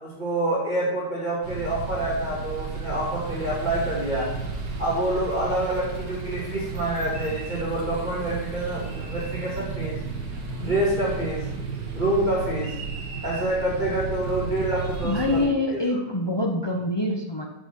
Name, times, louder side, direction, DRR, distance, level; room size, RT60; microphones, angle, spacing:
voice 1, 0.0-4.3 4.8-10.0 10.6-11.4 11.9-12.7 13.2-15.8, right 1 dB, 25° right, -7 dB, 2.4 m, -27 dB
sound 1, 1.4-15.5, right 4 dB, 60° right, 2.0 m, -33 dB
voice 2, 15.0-17.4, left 2 dB, 40° left, 1 dB, 0.3 m, -25 dB
6.5 x 6.2 x 6.7 m, 0.95 s
omnidirectional pair, 1.9 m